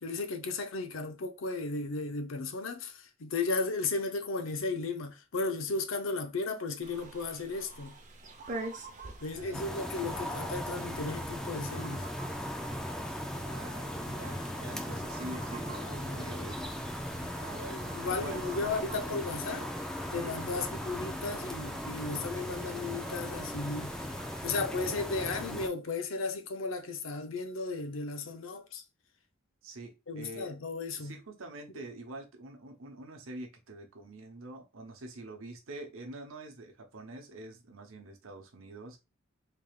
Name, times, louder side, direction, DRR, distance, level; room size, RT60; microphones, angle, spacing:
voice 1, 0.0-7.9 9.2-12.0 17.7-19.7 20.1-24.1 24.4-28.8 30.1-31.2, left 3 dB, 75° left, 0.7 m, -35 dB
sound 1, 6.8-24.5, right 2 dB, 40° right, 0.8 m, -48 dB
voice 2, 9.3-9.7 10.0-10.3 13.3-16.6 17.3-17.8 18.1-18.6 20.4-20.7 29.6-30.5 31.0-39.0, right 2 dB, 85° right, 0.9 m, -46 dB
sound 2, 9.5-25.7, equal, 5° left, 0.4 m, -38 dB
3.7 x 3.5 x 2.4 m
head